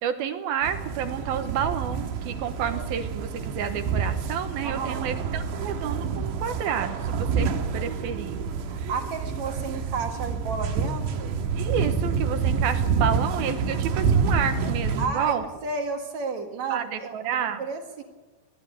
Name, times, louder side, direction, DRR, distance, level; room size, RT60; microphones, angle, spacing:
voice 1, 0.0-7.5 7.7-8.4 11.6-15.4 16.7-17.6, right 8 dB, 70° right, 8 dB, 2.7 m, -30 dB
sound 1, 0.6-15.1, right 5 dB, 85° right, 3.9 m, -28 dB
voice 2, 4.6-5.2 8.7-11.4 15.0-18.0, right 4 dB, 50° right, 4 dB, 2.4 m, -32 dB
21.5 x 13.5 x 9.5 m, 1.3 s
omnidirectional pair, 5.0 m